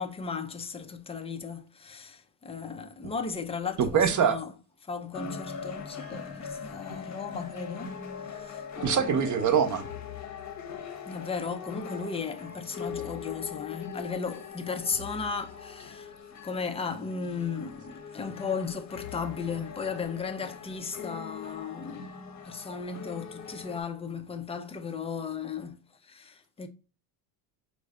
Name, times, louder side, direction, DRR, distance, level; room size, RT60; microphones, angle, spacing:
voice 1, 0.0-4.5 4.8-7.9 8.3-8.6 11.0-16.1 16.4-22.1 22.4-26.7, left 5 dB, 15° left, 0.3 m, -35 dB
voice 2, 3.8-4.4 8.8-9.8, right 7 dB, 40° right, 0.7 m, -24 dB
sound 1, 5.1-23.8, left 5 dB, 35° left, 0.8 m, -41 dB
4.6 x 2.2 x 3.5 m
supercardioid pair, 100°, 50 cm